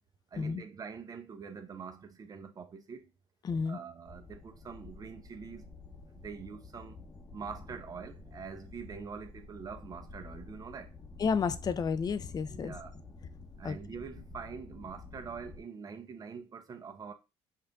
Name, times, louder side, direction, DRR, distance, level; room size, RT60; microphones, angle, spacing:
voice 1, 0.3-3.1 3.7-5.7 6.1-7.0 7.3-10.9 12.5-12.9 13.6-17.1, right 6 dB, 35° right, 0.9 m, -44 dB
voice 2, 3.4-3.8 11.2-12.8 13.6-13.8, left 5 dB, 40° left, 0.5 m, -31 dB
sound 1, 4.0-15.6, left 3 dB, 20° left, 1.1 m, -50 dB
5.6 x 2.6 x 3.5 m
cardioid pair, 100°, 10 cm